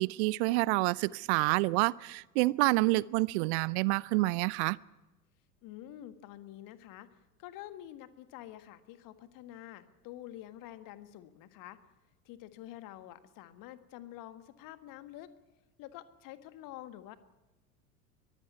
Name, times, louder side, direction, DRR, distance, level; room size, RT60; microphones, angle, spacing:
voice 1, 0.0-4.8, right 22 dB, 45° right, 23 dB, 0.6 m, -28 dB
voice 2, 5.6-7.1 7.4-11.8 12.2-15.3 15.8-17.2, left 13 dB, 45° left, 11 dB, 1.7 m, -48 dB
22.0 x 15.0 x 9.6 m, 1.0 s
figure-of-eight pair, 80°, 47 cm